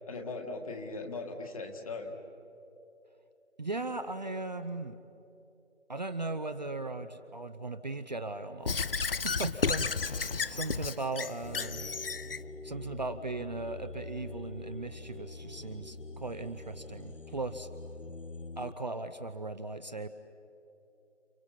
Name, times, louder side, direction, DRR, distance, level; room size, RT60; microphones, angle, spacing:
voice 1, 0.1-2.1, left 3 dB, 30° left, 3 dB, 2.0 m, -39 dB
voice 2, 3.6-5.0 5.9-11.9 12.6-17.7 18.6-20.1, right 3 dB, 35° right, 8 dB, 0.7 m, -38 dB
Squeak / Writing, 8.7-12.4, left 5 dB, 50° left, 0.5 m, -32 dB
sound 1, 11.4-18.7, left 3 dB, 90° left, 1.2 m, -45 dB
30.0 x 29.5 x 5.8 m, 2.9 s
figure-of-eight pair, 160°, 37 cm